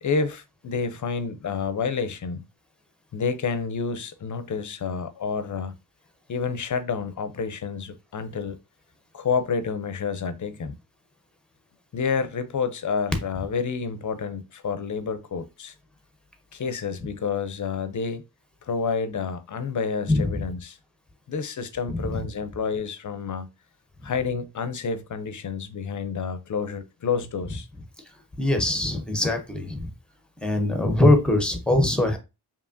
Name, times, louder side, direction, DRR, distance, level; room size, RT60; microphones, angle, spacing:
voice 1, 0.0-2.5 3.1-5.7 6.3-8.6 9.1-10.8 11.9-15.7 16.5-18.2 18.6-20.8 21.3-23.5 24.0-27.7, left 5 dB, 50° left, 0.4 m, -29 dB
voice 2, 20.1-20.4 21.9-22.1 28.4-29.8 30.4-32.2, left 1 dB, ahead, 0.6 m, -22 dB
4.8 x 2.8 x 2.5 m
wide cardioid pair, 175°, 40 cm